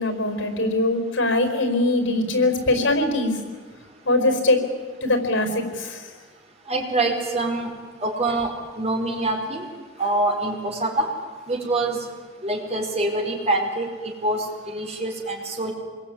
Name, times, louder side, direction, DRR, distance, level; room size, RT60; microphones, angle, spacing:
voice 1, 0.0-3.3 4.0-4.6 5.0-6.0, left 2 dB, 80° left, 7 dB, 4.8 m, -22 dB
voice 2, 6.7-7.7 8.0-9.7 10.0-11.1 11.5-12.0 12.4-13.9 14.2-15.7, right 2 dB, 35° right, 0 dB, 5.1 m, -25 dB
26.0 x 21.5 x 9.7 m, 1.5 s
head